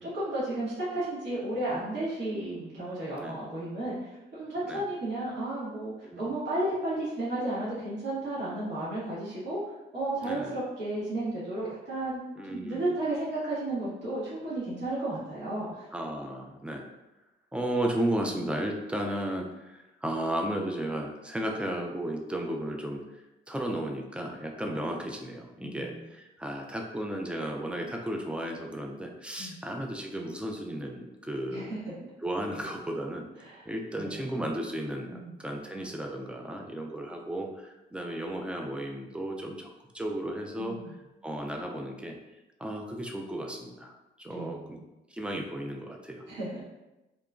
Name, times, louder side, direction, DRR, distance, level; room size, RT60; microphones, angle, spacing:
voice 1, 0.0-9.6 9.9-12.2 12.5-15.8 25.6-26.1 29.4-29.6 31.5-31.8 33.4-33.6 33.9-34.3 35.1-35.4 40.6-40.9 44.3-44.9 46.3-46.7, right 1 dB, 65° right, -10 dB, 1.3 m, -33 dB
voice 2, 6.0-6.4 10.2-10.6 12.4-12.9 15.9-16.9 17.5-23.0 23.5-31.7 32.2-40.8 41.2-42.2 42.6-44.8 45.1-46.2, right 1 dB, 5° right, 2 dB, 0.3 m, -34 dB
2.9 x 2.1 x 2.4 m, 0.99 s
cardioid pair, 90°, 20 cm